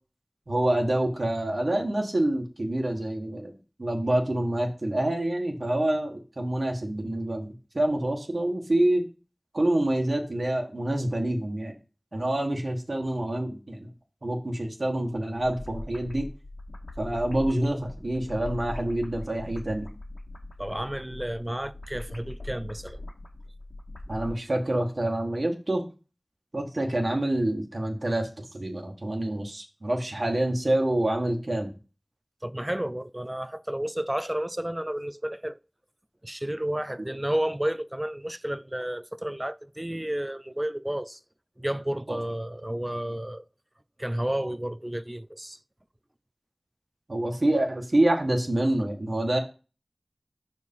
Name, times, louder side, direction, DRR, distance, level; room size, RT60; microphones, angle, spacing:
voice 1, 0.5-3.5 3.8-9.1 9.5-11.8 12.1-13.9 14.2-16.3 17.0-19.9 24.1-25.8 26.5-31.7 42.1-42.2 47.1-49.4, right 1 dB, 70° right, 1.6 m, -27 dB
sound 1, 15.4-24.3, left 2 dB, 80° left, 1.7 m, -40 dB
voice 2, 20.6-23.0 32.4-35.6 36.2-41.2 41.6-43.5 44.0-45.6, right 1 dB, 20° right, 0.5 m, -31 dB
6.1 x 4.6 x 5.5 m
wide cardioid pair, 45°, 0 cm